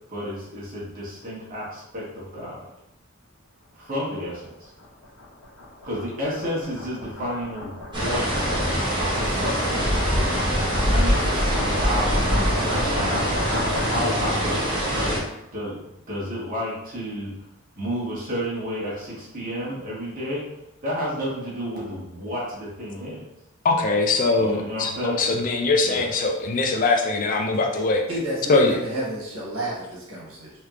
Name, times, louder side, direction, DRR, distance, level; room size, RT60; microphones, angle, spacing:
voice 1, 0.1-2.6 3.7-4.7 5.8-8.6 9.1-10.4 10.8-13.2 13.9-15.2 15.5-17.3 17.8-20.4 20.8-23.2 24.3-25.2 25.8-26.0, equal, 40° right, -6 dB, 1.1 m, -31 dB
sound 1, 4.4-14.4, left 1 dB, 90° left, 0.8 m, -33 dB
sound 2, 7.9-15.2, equal, 20° right, 0.9 m, -23 dB
voice 2, 23.6-28.0 28.5-28.8, left 3 dB, 40° left, 3 dB, 0.3 m, -22 dB
voice 3, 28.1-30.5, right 1 dB, 75° right, -6 dB, 1.3 m, -30 dB
3.3 x 2.9 x 2.4 m, 0.85 s
head